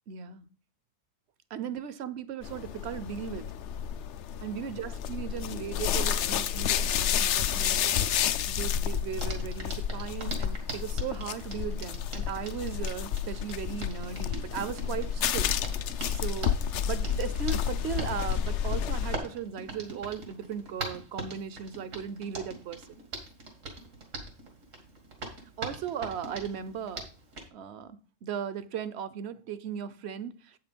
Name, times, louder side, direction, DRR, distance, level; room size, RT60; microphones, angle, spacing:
voice 1, 0.1-0.4 1.5-3.5 4.4-8.1 8.5-15.5 16.1-16.6 16.8-22.8 25.6-27.1 27.5-30.6, right 8 dB, 65° right, 0.9 m, -37 dB
sound 1, 2.4-19.2, left 9 dB, 70° left, 0.9 m, -30 dB
Hands, 9.2-27.5, right 2 dB, 90° right, 2.2 m, -43 dB
8.2 x 6.0 x 5.2 m
omnidirectional pair, 1.3 m